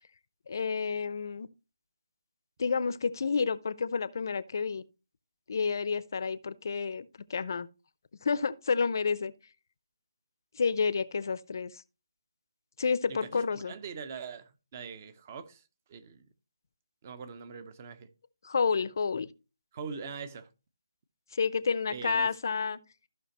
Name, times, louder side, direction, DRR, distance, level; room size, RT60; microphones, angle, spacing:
voice 1, 0.5-1.5 2.6-4.8 5.5-7.7 8.2-9.3 10.5-11.8 12.8-13.7 18.4-19.3 21.3-22.8, left 5 dB, 50° left, 0.6 m, -30 dB
voice 2, 13.1-15.6 15.9-16.3 17.0-18.1 19.7-20.5 21.9-22.3, right 5 dB, 30° right, 0.9 m, -42 dB
14.5 x 5.8 x 3.0 m
figure-of-eight pair, 155°, 2 cm